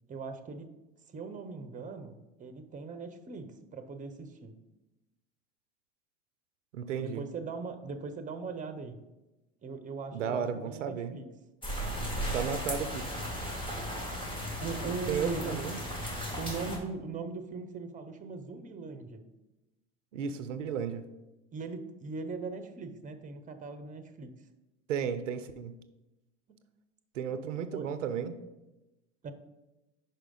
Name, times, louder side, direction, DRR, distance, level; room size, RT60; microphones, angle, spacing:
voice 1, 0.1-0.7 1.1-4.6 7.0-9.0 9.6-11.3 14.6-15.6 16.4-19.3 21.5-24.3 27.7-27.9 29.2-29.3, right 4 dB, 20° right, 9 dB, 0.8 m, -40 dB
voice 2, 6.7-7.2 10.1-11.2 12.3-13.1 15.1-15.8 20.1-21.0 24.9-25.7 27.1-28.4, right 7 dB, 85° right, 11 dB, 0.6 m, -34 dB
sound 1, 11.6-16.8, equal, 15° left, 2.4 m, -35 dB
5.6 x 5.0 x 5.4 m, 1.0 s
hypercardioid pair, 85°, 36 cm